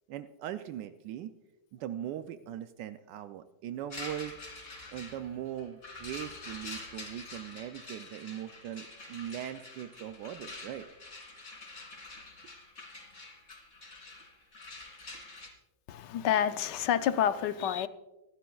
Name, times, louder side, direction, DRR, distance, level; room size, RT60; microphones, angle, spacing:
voice 1, 0.1-1.3 1.7-4.4 4.9-10.9, right 11 dB, 80° right, 1.2 m, -40 dB
sound 1, 3.9-15.5, left 3 dB, 45° left, 2.9 m, -46 dB
voice 2, 15.9-17.9, left 9 dB, 80° left, 1.3 m, -28 dB
25.0 x 11.5 x 2.3 m
omnidirectional pair, 1.9 m